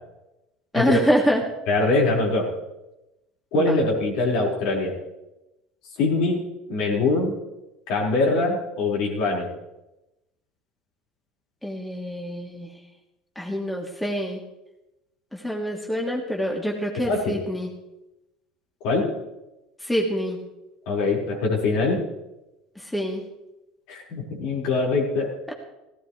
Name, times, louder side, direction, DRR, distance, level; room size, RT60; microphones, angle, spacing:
voice 1, 0.7-1.4 3.5-3.8 11.6-12.7 13.4-14.4 15.3-17.7 19.8-20.4 22.9-23.2 25.5-25.6, equal, 5° left, -1 dB, 3.0 m, -25 dB
voice 2, 1.7-2.5 3.5-5.0 6.0-6.4 6.7-7.4 7.9-9.5 17.0-17.4 18.8-19.1 20.8-22.0 23.9-25.3, left 3 dB, 60° left, -2 dB, 5.0 m, -23 dB
17.5 x 17.0 x 3.3 m, 0.96 s
hypercardioid pair, 70°, 0 cm